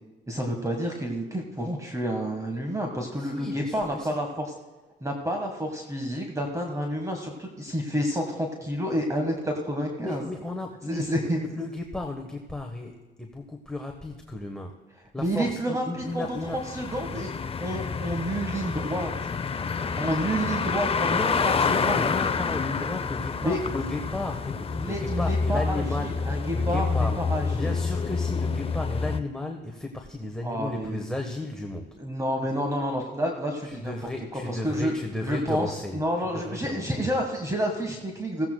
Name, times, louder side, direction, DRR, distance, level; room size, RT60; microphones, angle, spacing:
voice 1, 0.3-4.5 5.0-10.2 10.9-11.4 15.2-17.3 17.6-19.1 20.0-21.2 21.4-22.0 23.4-23.6 24.8-27.7 30.4-31.0 32.0-33.9 34.3-34.9 35.2-38.5, equal, 15° right, 2 dB, 1.5 m, -29 dB
voice 2, 3.1-4.2 10.0-14.8 15.1-16.6 18.7-18.9 21.0-27.2 27.5-32.0 33.6-37.1, left 2 dB, 5° left, 2 dB, 1.2 m, -34 dB
sound 1, 16.0-29.2, left 5 dB, 30° left, 0.6 m, -28 dB
16.0 x 15.5 x 2.3 m, 1.2 s
cardioid pair, 90°, 20 cm